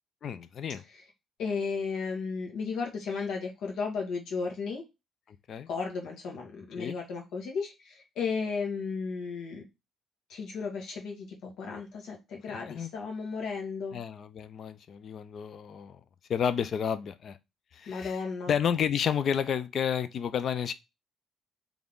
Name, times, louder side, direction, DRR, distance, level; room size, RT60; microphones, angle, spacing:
voice 1, 0.2-0.8 5.5-5.7 6.8-7.0 12.5-12.9 13.9-16.0 16.3-17.4 17.7-20.7, left 8 dB, 60° left, 0.5 m, -31 dB
voice 2, 1.4-4.8 5.7-9.6 10.3-14.0 17.9-18.5, left 5 dB, 75° left, 1.8 m, -34 dB
3.6 x 3.5 x 3.8 m
supercardioid pair, 75°, 0 cm